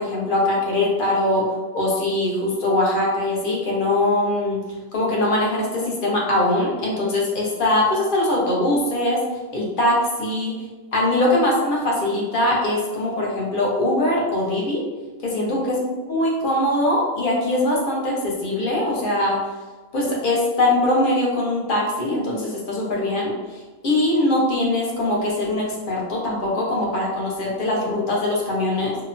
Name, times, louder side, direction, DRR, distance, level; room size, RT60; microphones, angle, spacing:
voice 1, 0.0-1.4 1.7-4.6 4.9-9.2 9.5-10.5 10.9-14.8 15.2-19.4 19.9-23.3 23.8-29.0, left 1 dB, 50° left, -3 dB, 0.7 m, -22 dB
2.8 x 2.1 x 2.5 m, 1.2 s
omnidirectional pair, 1.3 m